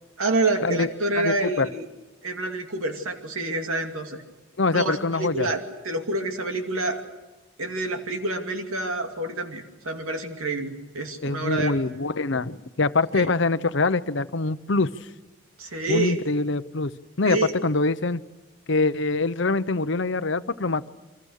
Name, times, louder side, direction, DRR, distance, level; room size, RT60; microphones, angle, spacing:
voice 1, 0.2-1.9 2.2-4.2 4.7-7.0 7.6-11.7 13.1-13.3 15.6-16.2 17.3-17.5, right 2 dB, 80° right, 4 dB, 2.5 m, -28 dB
voice 2, 1.1-1.7 4.6-5.5 11.2-14.9 15.9-16.9 17.2-18.2 18.7-20.9, left 3 dB, 60° left, 13 dB, 0.8 m, -24 dB
29.0 x 25.5 x 6.5 m, 1.1 s
head